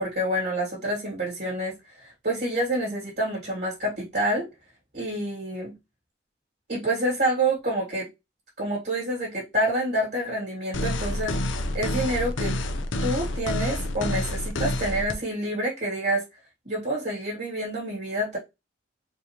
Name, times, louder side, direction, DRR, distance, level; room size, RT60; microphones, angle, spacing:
voice 1, 0.0-4.5 4.9-5.7 6.7-8.1 8.6-12.5 13.0-16.2 16.6-18.4, right 1 dB, 60° right, 2.1 m, -28 dB
sound 1, 10.7-15.1, left 1 dB, 85° left, 0.6 m, -28 dB
4.5 x 2.8 x 2.9 m
head